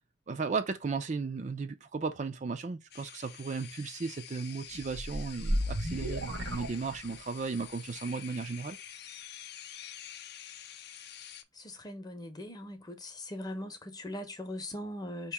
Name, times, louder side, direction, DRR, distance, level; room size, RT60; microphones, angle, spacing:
voice 1, 0.3-8.8, right 4 dB, 40° right, 0.4 m, -35 dB
sound 1, 2.9-11.4, left 10 dB, 55° left, 0.5 m, -48 dB
sound 2, 4.7-7.5, equal, 85° right, 1.2 m, -34 dB
voice 2, 11.5-15.3, left 1 dB, 20° left, 0.8 m, -40 dB
5.1 x 3.0 x 3.4 m
head